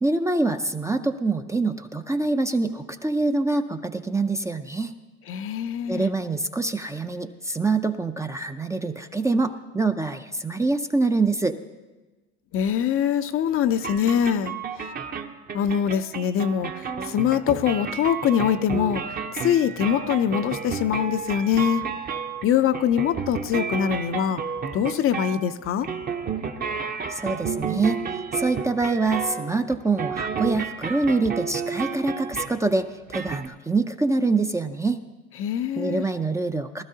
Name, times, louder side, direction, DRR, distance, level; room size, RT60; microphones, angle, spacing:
voice 1, 0.0-4.9 5.9-11.6 27.1-28.0 28.3-35.0 35.8-36.8, right 3 dB, 10° right, 7 dB, 0.5 m, -25 dB
voice 2, 5.3-6.0 12.5-14.6 15.5-16.7 17.1-19.0 19.4-21.8 22.4-24.4 24.7-25.9 35.4-36.0, left 9 dB, 40° left, 11 dB, 0.5 m, -23 dB
sound 1, 13.8-32.7 33.1-33.5, right 6 dB, 30° right, 0.8 m, -32 dB
19.0 x 12.5 x 2.8 m, 1.2 s
supercardioid pair, 100°, 32 cm